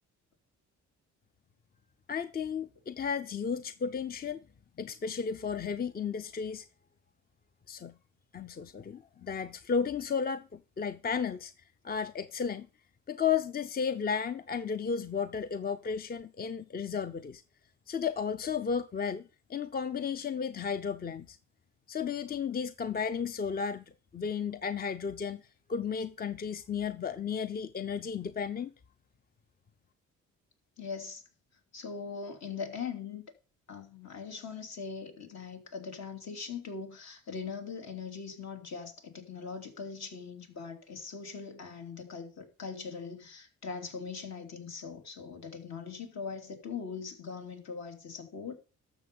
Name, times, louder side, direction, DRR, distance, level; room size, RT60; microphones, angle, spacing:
voice 1, 2.1-4.4 4.8-6.7 7.7-7.9 8.3-11.5 11.8-12.7 13.1-17.4 17.9-21.4 21.9-23.8 24.1-25.4 25.7-28.7, left 6 dB, 30° left, 0.6 m, -33 dB
voice 2, 30.8-31.2 31.7-33.2 33.7-48.5, left 5 dB, 60° left, 3.1 m, -41 dB
12.5 x 7.1 x 5.4 m
cardioid pair, 90°, 30 cm